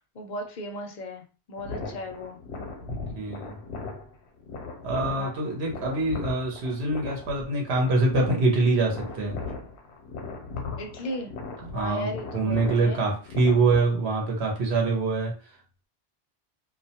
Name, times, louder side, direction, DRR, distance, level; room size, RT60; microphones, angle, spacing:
voice 1, 0.1-1.2 1.5-2.4 5.2-5.6 10.8-11.3 11.7-13.1, left 1 dB, 55° left, 3 dB, 0.6 m, -36 dB
sound 1, 1.6-13.8, left 4 dB, 85° left, 0.9 m, -38 dB
voice 2, 2.9-3.6 4.8-9.4 11.6-15.3, right 3 dB, 80° right, 0 dB, 0.9 m, -25 dB
2.3 x 2.0 x 2.7 m, 0.35 s
omnidirectional pair, 1.1 m